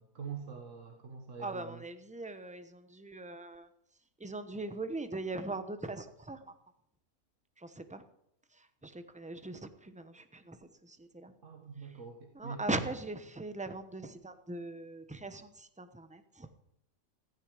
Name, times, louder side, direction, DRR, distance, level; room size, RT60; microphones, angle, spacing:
voice 1, 0.0-1.8 11.4-12.9, right 5 dB, 60° right, 3 dB, 1.9 m, -45 dB
voice 2, 1.4-3.7 4.2-6.4 7.6-8.0 8.8-11.3 12.4-16.5, right 2 dB, 5° right, 10 dB, 0.7 m, -40 dB
15.5 x 15.0 x 5.0 m, 0.76 s
omnidirectional pair, 1.5 m